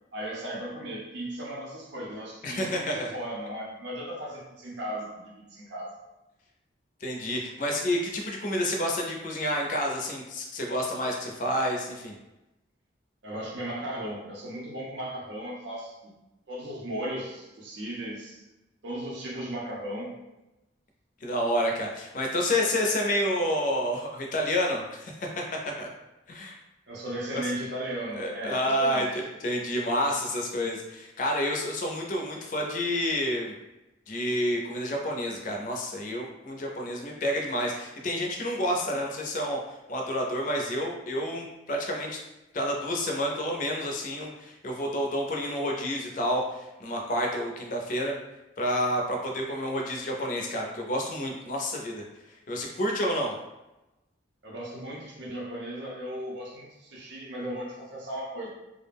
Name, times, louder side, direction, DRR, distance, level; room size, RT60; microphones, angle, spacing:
voice 1, 0.1-6.0 13.2-16.1 16.5-18.4 18.8-20.2 26.9-29.2 54.4-58.5, right 1 dB, 70° right, -4 dB, 0.6 m, -36 dB
voice 2, 2.4-3.1 7.0-12.1 21.2-25.4 25.8-25.9 26.3-26.6 27.3-27.4 28.2-33.5 34.1-39.6 39.9-42.2 42.5-48.2 48.6-52.0 52.5-53.3, equal, 40° left, 0 dB, 0.4 m, -29 dB
2.4 x 2.0 x 3.3 m, 0.99 s
head